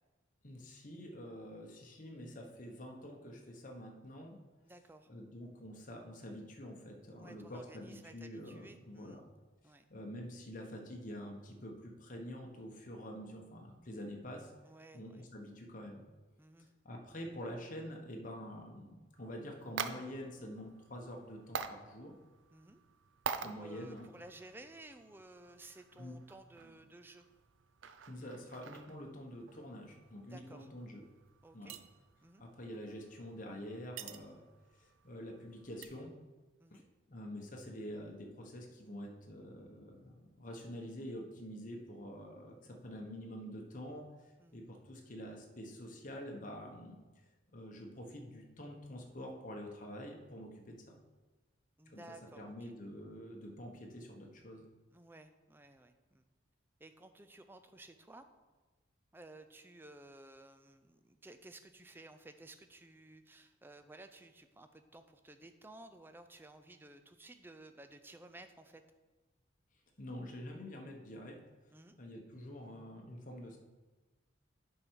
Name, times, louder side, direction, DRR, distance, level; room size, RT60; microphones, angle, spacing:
voice 1, 0.4-4.4 5.1-9.2 9.9-14.5 14.9-16.0 16.8-22.1 23.4-24.0 26.0-26.2 28.1-31.0 31.5-31.8 32.4-34.5 34.8-36.1 36.7-36.8 37.1-44.0 44.5-47.0 47.5-51.0 51.9-52.0 52.4-54.7 70.0-71.4 72.0-73.6, equal, 45° left, 1 dB, 1.1 m, -47 dB
voice 2, 4.6-5.1 7.2-9.2 9.6-9.8 14.6-15.2 16.4-16.7 22.5-22.8 23.4-27.3 30.3-30.7 31.4-31.8 32.2-32.4 36.6-36.8 44.4-44.6 51.8-52.7 54.9-56.2 56.8-58.2 59.1-68.8 71.7-72.0, right 2 dB, 10° right, 8 dB, 0.4 m, -55 dB
sound 1, 19.1-35.9, right 6 dB, 75° right, 0.5 m, -48 dB
8.2 x 5.6 x 4.6 m, 1.2 s
head